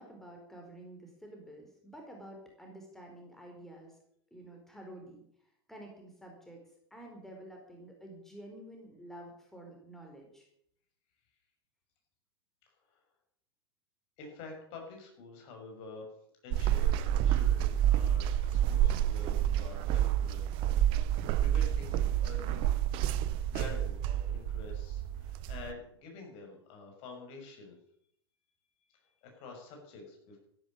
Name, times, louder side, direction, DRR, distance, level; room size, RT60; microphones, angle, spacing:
voice 1, 0.0-4.0 4.3-6.6 6.9-10.5, right 1 dB, 5° left, 1 dB, 4.4 m, -50 dB
voice 2, 12.6-13.0 14.2-16.1 16.4-20.5 20.9-22.8 23.5-27.7 29.2-30.4, left 4 dB, 45° left, 2 dB, 6.5 m, -48 dB
sound 1, 16.5-25.7, right 11 dB, 40° right, 0.9 m, -29 dB
13.5 x 13.0 x 6.8 m, 0.69 s
figure-of-eight pair, 90°, 13 cm